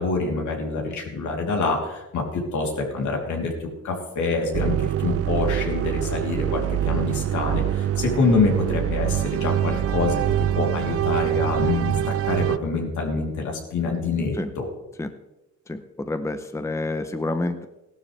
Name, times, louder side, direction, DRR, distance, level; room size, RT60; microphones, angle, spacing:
voice 1, 0.0-12.0 12.2-14.6, left 3 dB, 75° left, 0 dB, 3.3 m, -26 dB
sound 1, 4.5-12.6, right 12 dB, 50° right, 0.5 m, -24 dB
voice 2, 15.7-17.7, left 2 dB, 10° left, 9 dB, 0.8 m, -28 dB
16.5 x 12.0 x 3.4 m, 0.97 s
cardioid pair, 90°, 30 cm